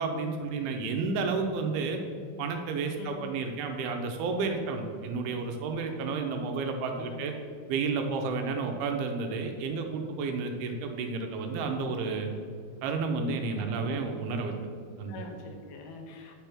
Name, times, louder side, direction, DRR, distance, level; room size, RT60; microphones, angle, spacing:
voice 1, 0.0-2.0 2.4-7.3 7.7-12.3 12.8-14.5 15.0-15.2, right 4 dB, 85° right, 4 dB, 2.5 m, -31 dB
voice 2, 3.0-3.3 7.0-7.5 13.5-14.1 15.1-16.3, left 5 dB, 85° left, 3 dB, 2.8 m, -45 dB
9.3 x 3.4 x 6.0 m, 2.2 s
omnidirectional pair, 4.5 m